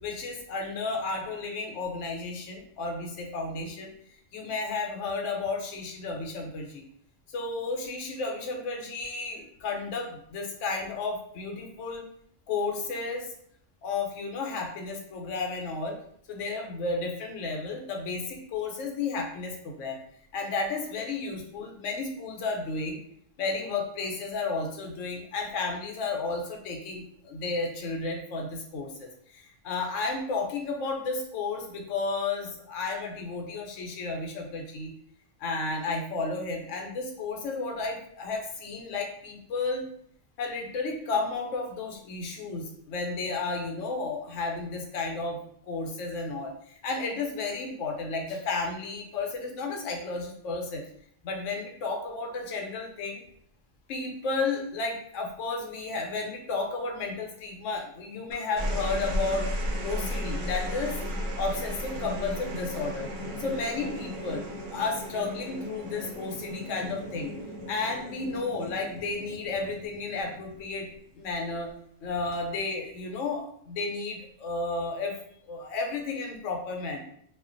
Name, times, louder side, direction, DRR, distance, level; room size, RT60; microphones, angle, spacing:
voice 1, 0.0-3.9 4.3-6.9 7.3-12.0 12.5-13.3 13.8-16.0 16.3-20.0 20.3-23.0 23.4-34.9 35.4-39.9 40.4-45.4 45.6-50.8 51.2-53.2 53.9-59.5 59.8-61.0 61.3-63.1 63.4-67.3 67.7-70.9 71.2-71.7 72.0-75.2 75.5-77.0, left 3 dB, 75° left, 1 dB, 0.9 m, -32 dB
sound 1, 58.3-70.9 72.1-72.6, equal, 70° right, 0.9 m, -35 dB
2.4 x 2.2 x 2.4 m, 0.68 s
omnidirectional pair, 1.3 m